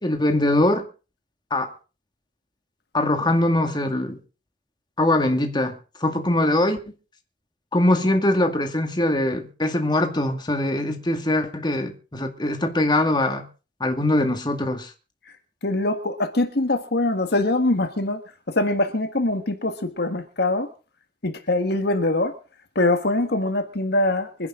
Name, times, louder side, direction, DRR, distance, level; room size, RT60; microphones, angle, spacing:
voice 1, 0.0-0.9 1.5-1.7 2.9-4.2 5.0-6.8 7.7-13.5 13.8-14.9, left 1 dB, 25° left, 2.1 m, -22 dB
voice 2, 15.6-20.7 21.2-22.3 22.7-24.5, left 2 dB, 60° left, 1.7 m, -23 dB
25.0 x 10.5 x 3.8 m
head